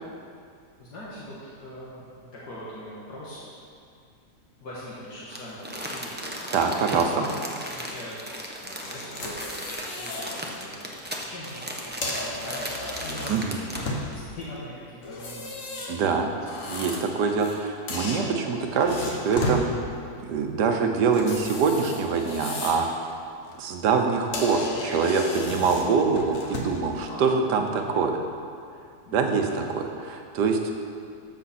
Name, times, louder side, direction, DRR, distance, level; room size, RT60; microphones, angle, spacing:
voice 1, 0.8-3.4 4.6-8.3 8.6-10.9 11.2-16.4 24.6-25.0 27.1-28.0 29.1-29.7, left 1 dB, 75° left, -8 dB, 2.1 m, -42 dB
Crumpling crinkling, 5.3-14.0 14.4-14.5, equal, 10° right, 0.6 m, -36 dB
voice 2, 6.5-7.3 13.3-13.6 15.9-16.3 16.7-19.7 20.2-23.0 23.6-28.1 29.1-30.7, right 5 dB, 80° right, 4 dB, 1.5 m, -24 dB
sound 1, 8.8-10.4 10.8-11.0 11.8-14.3 15.0-17.6 17.9-19.7 21.1-22.9 23.3-23.6 24.0-24.1 24.3-26.9, left 2 dB, 50° left, 1.4 m, -34 dB
12.5 x 7.0 x 4.2 m, 2.3 s
omnidirectional pair, 1.8 m